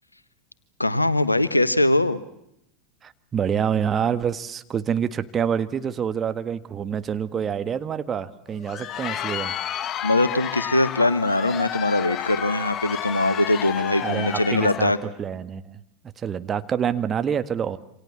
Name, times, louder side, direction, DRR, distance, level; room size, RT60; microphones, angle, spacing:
voice 1, 0.8-2.2 10.0-15.0, left 1 dB, 85° left, 15 dB, 1.3 m, -22 dB
voice 2, 3.0-9.5 14.0-15.8 16.2-17.8, right 8 dB, 25° right, 11 dB, 1.6 m, -27 dB
Crowd, 8.5-15.0, left 10 dB, 35° left, 1.2 m, -31 dB
28.0 x 27.0 x 7.4 m, 0.81 s
figure-of-eight pair, 85°, 0 cm